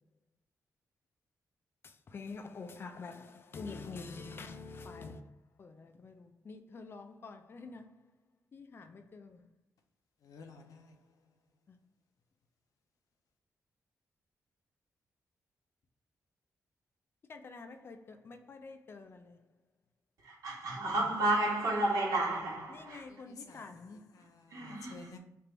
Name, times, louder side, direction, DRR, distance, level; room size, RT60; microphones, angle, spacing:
voice 1, 1.8-5.3 5.6-7.9 8.5-9.5 11.7-11.8 17.3-19.4 22.7-24.1, left 4 dB, 40° left, 0.4 m, -47 dB
voice 2, 10.2-10.9 23.5-23.6 24.2-25.2, left 3 dB, 90° left, 0.7 m, -52 dB
voice 3, 20.2-23.1 24.5-25.1, right 2 dB, 80° right, 1.5 m, -32 dB
3.3 x 2.5 x 4.4 m
wide cardioid pair, 135°, 6 cm